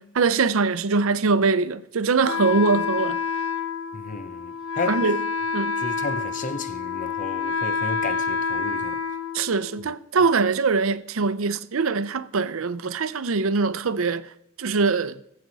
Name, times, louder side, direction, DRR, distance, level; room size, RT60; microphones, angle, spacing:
voice 1, 0.0-3.2 4.9-5.2 5.5-5.8 9.3-14.3 14.6-15.2, right 4 dB, 75° right, 0.6 m, -23 dB
Wind instrument woodwind instrument, 2.3-10.0, left 5 dB, 75° left, 0.7 m, -28 dB
voice 2, 3.9-5.1 5.8-9.0, left 3 dB, 40° left, 0.7 m, -33 dB
19.5 x 7.8 x 4.0 m
head